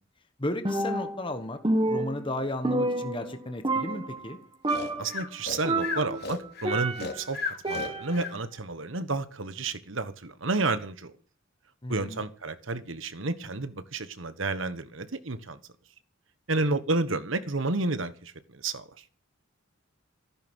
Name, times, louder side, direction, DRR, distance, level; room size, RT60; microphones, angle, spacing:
voice 1, 0.4-1.6 1.9-4.4 11.8-12.2, left 1 dB, 25° left, 1.4 m, -34 dB
Percussion, 0.6-1.3 1.6-3.4 3.6-4.3 4.6-5.2 5.6-7.2 7.6-8.3, right 2 dB, 25° right, 1.6 m, -29 dB
Breathing, 4.7-8.4, left 4 dB, 50° left, 2.9 m, -35 dB
voice 2, 5.0-11.1 11.9-15.6 16.5-19.0, right 3 dB, 70° right, 1.3 m, -31 dB
14.5 x 12.0 x 6.2 m
head